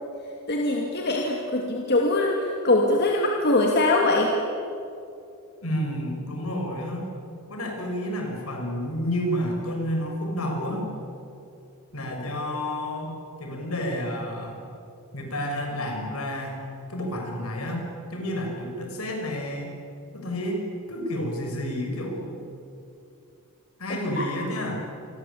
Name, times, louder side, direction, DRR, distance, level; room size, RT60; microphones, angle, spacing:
voice 1, 0.5-4.3 23.9-24.3, left 2 dB, 50° left, 0 dB, 2.6 m, -23 dB
voice 2, 5.6-7.1 7.5-10.9 11.9-14.6 15.1-19.8 20.1-22.4 23.8-24.8, equal, 70° left, 2 dB, 6.8 m, -30 dB
28.0 x 22.5 x 8.7 m, 2.6 s
head